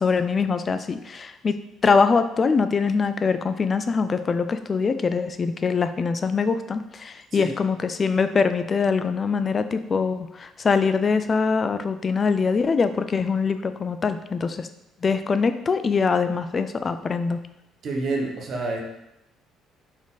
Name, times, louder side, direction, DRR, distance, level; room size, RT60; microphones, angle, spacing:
voice 1, 0.0-14.7 15.0-17.4, left 5 dB, 25° left, 10 dB, 0.3 m, -23 dB
voice 2, 17.8-18.8, right 2 dB, 40° right, 1 dB, 1.1 m, -28 dB
5.9 x 4.4 x 4.0 m, 0.83 s
cardioid pair, 175°, 0 cm